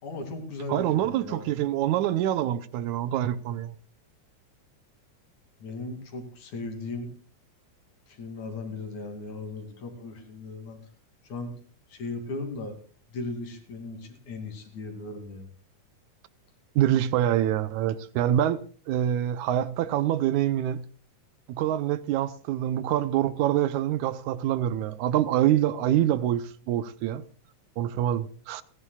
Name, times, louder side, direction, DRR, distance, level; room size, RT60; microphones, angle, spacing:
voice 1, 0.0-1.4 5.6-7.1 8.1-10.8 11.2-11.5 11.9-12.8 13.1-15.5, left 3 dB, 70° left, 4.0 m, -37 dB
voice 2, 0.7-3.8 16.8-18.6 18.9-20.9 21.5-27.2 27.8-28.6, right 12 dB, 80° right, 2.1 m, -25 dB
30.0 x 11.0 x 2.3 m
omnidirectional pair, 3.5 m